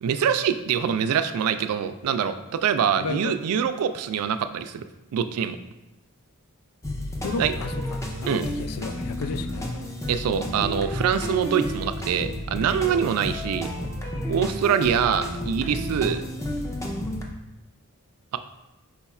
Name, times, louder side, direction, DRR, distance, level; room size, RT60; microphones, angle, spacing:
voice 1, 0.0-4.9 5.1-5.6 7.4-7.5 8.3-8.5 10.1-13.7 14.3-16.2, right 8 dB, 70° right, 10 dB, 0.3 m, -24 dB
voice 2, 3.0-3.4 7.2-9.8, left 4 dB, 90° left, 10 dB, 0.4 m, -33 dB
sound 1, 6.8-17.2, left 1 dB, 15° left, 0.5 m, -31 dB
4.7 x 2.3 x 4.1 m, 0.98 s
head